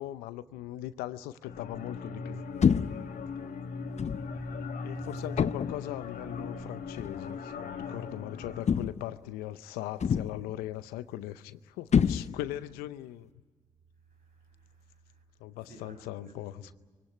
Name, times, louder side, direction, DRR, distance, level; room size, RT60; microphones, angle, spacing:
voice 1, 0.0-2.4 2.8-3.0 4.8-13.3 15.4-16.7, left 14 dB, 85° left, 0.6 m, -39 dB
sound 1, 1.4-8.6, left 4 dB, 65° left, 1.9 m, -39 dB
sound 2, 2.6-3.1 4.0-4.3 5.4-5.9 7.0-7.2 8.7-9.2 10.0-10.5 11.9-12.6, left 7 dB, 50° left, 0.6 m, -27 dB
voice 2, 4.3-5.3 14.2-15.2 15.7-16.7, right 3 dB, 70° right, 6.4 m, -55 dB
23.0 x 18.0 x 9.8 m
hypercardioid pair, 45°, 15 cm